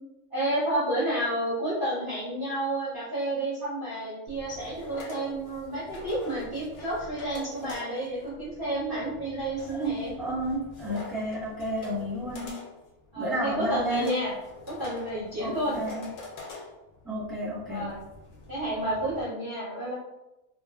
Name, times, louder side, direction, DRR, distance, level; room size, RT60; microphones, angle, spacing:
voice 1, 0.3-10.1 13.1-14.3 14.7-15.8 17.7-18.0 18.5-19.9, right 1 dB, 45° right, -9 dB, 0.8 m, -30 dB
sound 1, 4.3-19.2, left 3 dB, 65° left, 0.8 m, -45 dB
voice 2, 9.7-12.6 13.2-14.1 15.4-16.1 17.0-18.0, right 1 dB, ahead, -9 dB, 0.8 m, -31 dB
2.6 x 2.4 x 2.3 m, 0.95 s
omnidirectional pair, 1.6 m